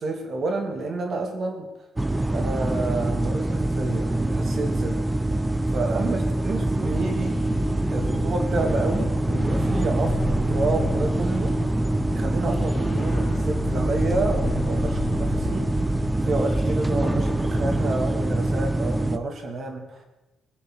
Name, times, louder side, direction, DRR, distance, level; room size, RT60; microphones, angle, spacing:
voice 1, 0.0-1.7 2.3-5.0 5.7-7.4 7.9-11.6 12.1-15.7 16.2-20.0, right 3 dB, 55° right, 4 dB, 3.0 m, -29 dB
sound 1, 2.0-19.2, right 1 dB, 15° right, 1.0 m, -24 dB
sound 2, 6.9-18.0, left 3 dB, 45° left, 2.3 m, -34 dB
23.0 x 7.8 x 6.6 m, 1.1 s
cardioid pair, 90°, 0 cm